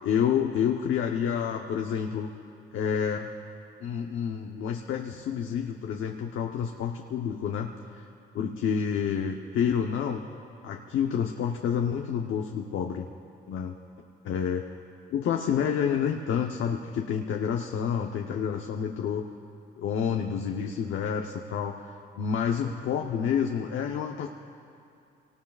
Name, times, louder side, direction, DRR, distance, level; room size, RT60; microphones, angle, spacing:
voice 1, 0.0-2.3 2.7-3.3 3.8-8.1 8.3-10.2 10.6-13.0 13.5-13.7 14.2-14.7 15.1-19.3 19.8-21.9 22.2-24.3, left 7 dB, 80° left, 2 dB, 0.9 m, -29 dB
29.5 x 19.0 x 2.4 m, 2.5 s
cardioid pair, 90°, 20 cm